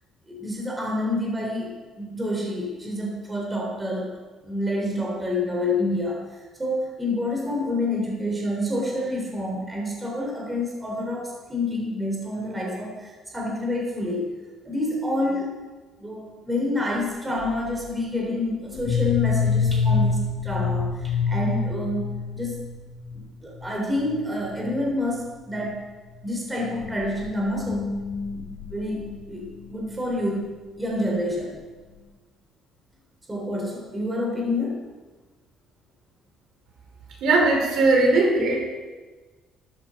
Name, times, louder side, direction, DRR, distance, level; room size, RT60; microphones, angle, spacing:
voice 1, 0.3-14.3 14.6-15.5 16.0-22.6 23.4-25.8 26.2-28.0 28.7-30.4 30.8-31.6 33.3-34.8, left 1 dB, 15° right, -2 dB, 3.8 m, -28 dB
sound 1, 17.4-17.8 18.7-23.2 23.6-23.7 24.0-24.3 24.6-24.9 25.6-25.7 26.6-29.8, left 5 dB, 65° left, 2.1 m, -27 dB
voice 2, 37.2-38.6, right 2 dB, 65° right, -1 dB, 5.3 m, -19 dB
16.5 x 13.5 x 5.2 m, 1.3 s
cardioid pair, 150°, 0 cm